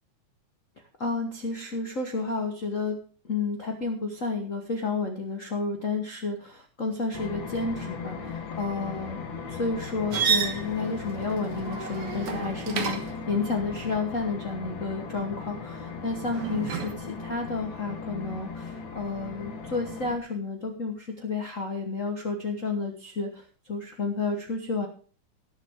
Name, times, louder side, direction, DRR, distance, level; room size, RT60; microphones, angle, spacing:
voice 1, 1.0-3.0 3.2-9.2 9.5-24.9, left 3 dB, 65° left, 2 dB, 0.7 m, -31 dB
sound 1, 7.1-20.2, left 5 dB, 45° left, 1.9 m, -38 dB
sound 2, 10.1-13.3 16.3-16.9, right 6 dB, 55° right, 2.0 m, -30 dB
18.0 x 7.2 x 3.6 m, 0.39 s
omnidirectional pair, 3.7 m